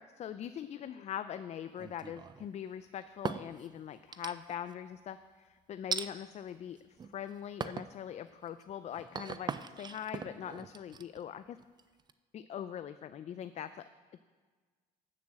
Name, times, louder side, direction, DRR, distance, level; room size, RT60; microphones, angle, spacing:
voice 1, 0.0-11.6 12.3-13.8, left 9 dB, 40° left, 12 dB, 0.4 m, -42 dB
sound 1, 1.8-2.5 3.0-3.7 4.1-4.7 5.9-6.1 6.8-7.2 7.6-8.0 8.4-12.1, right 6 dB, 25° right, 0.4 m, -40 dB
8.8 x 7.2 x 7.4 m, 1.5 s
cardioid pair, 110°, 17 cm